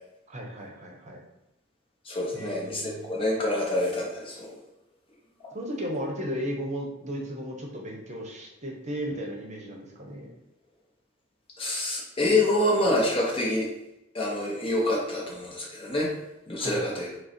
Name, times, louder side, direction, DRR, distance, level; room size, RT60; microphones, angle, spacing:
voice 1, 0.3-1.2 2.3-3.1 5.5-10.3 16.6-16.9, equal, 35° right, 0 dB, 0.9 m, -35 dB
voice 2, 2.0-4.5 11.6-13.7 14.1-16.1 16.5-17.1, left 1 dB, 25° left, -3 dB, 0.7 m, -26 dB
5.4 x 2.2 x 4.3 m, 0.91 s
head